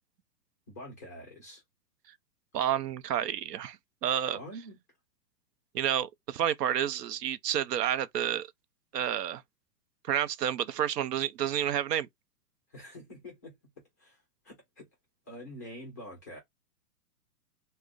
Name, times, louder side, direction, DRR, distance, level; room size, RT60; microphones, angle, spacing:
voice 1, 0.7-1.6 4.3-4.8 12.7-13.5 14.0-14.9 15.3-16.4, equal, 15° left, 0.3 m, -46 dB
voice 2, 2.5-3.8 4.0-4.4 5.7-8.5 8.9-9.4 10.1-12.1, right 10 dB, 80° right, 0.6 m, -30 dB
2.4 x 2.0 x 3.8 m
hypercardioid pair, 125°, 48 cm